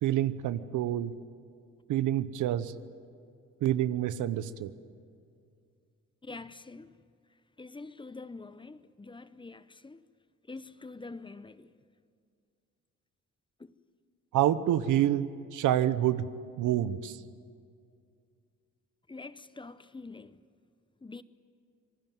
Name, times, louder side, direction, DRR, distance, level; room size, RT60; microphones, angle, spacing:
voice 1, 0.0-1.1 1.9-2.7 3.6-4.7 14.3-16.3 16.6-17.2, right 12 dB, 85° right, 1.0 m, -27 dB
voice 2, 6.2-7.0 7.6-10.0 10.5-11.7 13.6-13.7 19.1-20.4 21.0-21.2, left 3 dB, 15° left, 0.8 m, -45 dB
26.5 x 19.0 x 9.2 m
cardioid pair, 90°, 30 cm